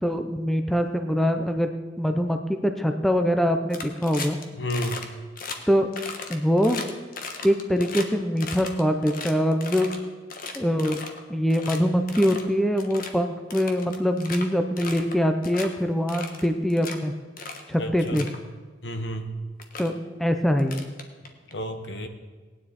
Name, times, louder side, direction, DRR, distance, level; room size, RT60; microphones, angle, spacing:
voice 1, 0.0-1.7 2.0-4.4 5.7-5.9 6.3-6.8 7.4-9.9 10.5-11.0 11.3-17.1 17.7-18.3 19.8-19.9 20.2-20.9, equal, ahead, 6 dB, 0.6 m, -23 dB
sound 1, 3.7-4.4 4.7-5.1 5.4-5.6 5.9-8.1 8.4-10.0 10.3-11.2 11.5-11.8 12.1-12.5 12.8-13.1 13.5-14.4 14.8-15.2 15.4-15.7 16.1-17.0 17.4-17.6 18.0-18.4 19.2-19.3 19.6-19.9 20.6-21.5, left 4 dB, 50° left, 1.2 m, -36 dB
voice 2, 4.6-5.1 17.8-18.2 18.8-19.3 21.5-22.1, left 1 dB, 65° left, 7 dB, 1.2 m, -31 dB
18.0 x 9.8 x 4.2 m, 1.4 s
head